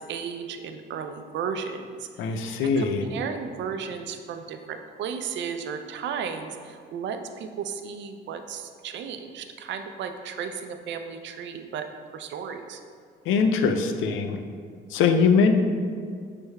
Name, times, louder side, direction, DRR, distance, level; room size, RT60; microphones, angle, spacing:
voice 1, 0.1-2.1 2.3-11.9 12.1-12.8, right 6 dB, 70° right, 7 dB, 0.4 m, -34 dB
voice 2, 2.2-3.0 13.3-14.4 14.9-15.5, left 5 dB, 85° left, 6 dB, 0.4 m, -22 dB
6.2 x 3.3 x 2.2 m, 2.1 s
cardioid pair, 90°, 20 cm